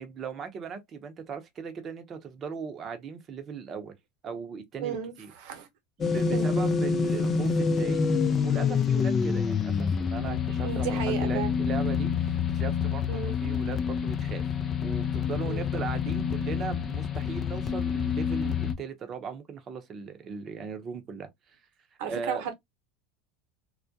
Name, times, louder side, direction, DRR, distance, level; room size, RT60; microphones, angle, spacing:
voice 1, 0.0-3.9 4.2-5.3 6.0-8.0 8.4-14.5 14.8-21.6 22.1-22.4, right 6 dB, 35° right, 0.7 m, -38 dB
voice 2, 4.8-5.7 6.3-6.5 10.6-11.6 13.1-13.4 15.5-15.6 22.0-22.5, right 8 dB, 70° right, 0.8 m, -34 dB
sound 1, 6.0-18.7, left 6 dB, 30° left, 0.4 m, -27 dB
2.3 x 2.1 x 2.6 m
supercardioid pair, 110°, 0 cm